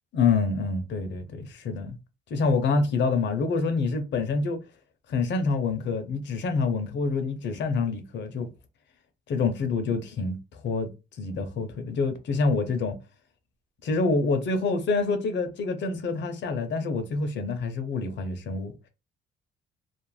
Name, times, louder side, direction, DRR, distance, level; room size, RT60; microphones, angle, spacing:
voice 1, 0.1-2.0 2.3-4.6 5.1-8.5 9.3-10.4 10.6-10.9 11.2-13.0 13.8-18.7, left 4 dB, 65° left, 0.7 m, -26 dB
2.5 x 2.0 x 3.1 m
cardioid pair, 90°, 20 cm